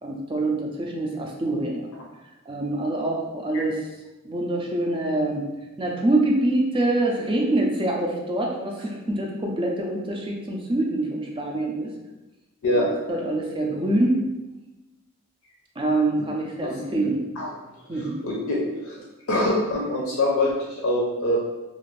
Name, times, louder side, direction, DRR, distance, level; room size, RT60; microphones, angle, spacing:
voice 1, 0.0-1.9 2.5-3.8 4.2-5.4 5.8-11.9 12.7-14.2 15.8-17.2 17.9-18.2, right 2 dB, 25° right, 0 dB, 0.4 m, -25 dB
voice 2, 16.6-17.0 17.4-17.5 17.9-19.0 19.3-21.4, left 1 dB, 75° left, -4 dB, 0.5 m, -24 dB
2.5 x 2.5 x 3.1 m, 1.1 s
head